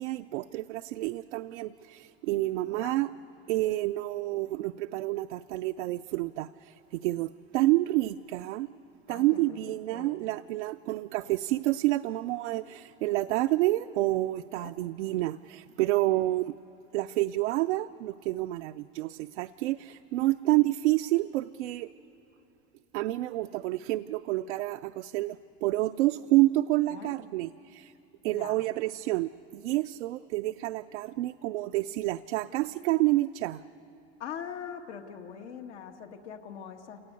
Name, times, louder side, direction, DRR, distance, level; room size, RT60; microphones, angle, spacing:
voice 1, 0.0-3.1 3.5-8.7 9.1-16.5 16.9-21.9 22.9-27.9 28.2-33.6, right 17 dB, 90° right, 9 dB, 0.5 m, -29 dB
voice 2, 2.7-3.0 9.1-9.2 9.5-10.2 14.6-14.7 26.9-27.1 28.3-28.6 34.2-37.0, left 8 dB, 90° left, 4 dB, 1.6 m, -42 dB
27.0 x 18.5 x 8.2 m, 2.7 s
supercardioid pair, 115°, 34 cm